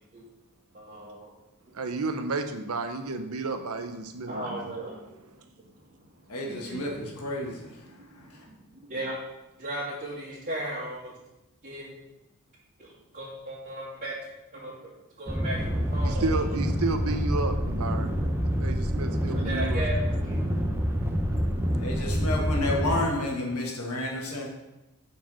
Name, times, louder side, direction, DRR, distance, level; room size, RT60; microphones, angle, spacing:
voice 1, 0.7-1.3 4.2-5.2 5.6-5.7 6.0-6.1 6.5-6.8 7.8-9.1 9.6-11.1 11.6-12.0 12.8-14.2 14.5-14.7 15.2-15.6 15.9-16.4 19.3-20.6, right 1 dB, 35° right, -10 dB, 2.4 m, -36 dB
voice 2, 1.7-4.7 16.0-18.1 18.6-19.8, right 3 dB, 70° right, 7 dB, 0.8 m, -31 dB
voice 3, 6.3-8.4 21.8-24.5, left 1 dB, 75° left, -1 dB, 1.4 m, -31 dB
sound 1, 15.3-23.0, equal, 10° right, 0.8 m, -27 dB
7.4 x 4.7 x 6.1 m, 0.96 s
head